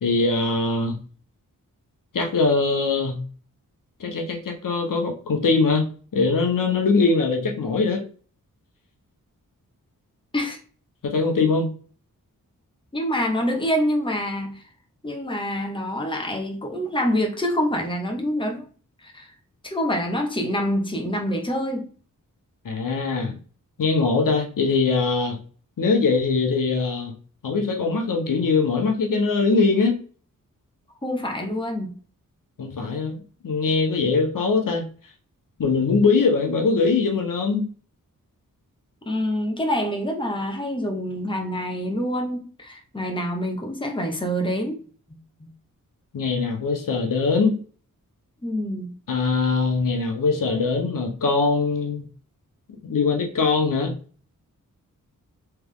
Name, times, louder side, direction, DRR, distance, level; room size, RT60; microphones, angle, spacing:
voice 1, 0.0-0.9 2.1-3.2 4.0-8.0 11.0-11.7 22.6-23.3 23.8-25.4 25.8-27.1 27.4-30.0 32.6-34.9 35.6-37.7 46.1-47.6 49.1-52.0 52.8-54.0, left 4 dB, 70° left, 3 dB, 1.0 m, -22 dB
voice 2, 12.9-14.6 15.0-18.6 19.0-19.3 19.6-21.9 31.0-32.0 39.1-44.8 45.1-45.5 48.4-49.0, equal, 15° left, 2 dB, 1.0 m, -26 dB
3.5 x 3.4 x 3.6 m, 0.40 s
wide cardioid pair, 90°, 34 cm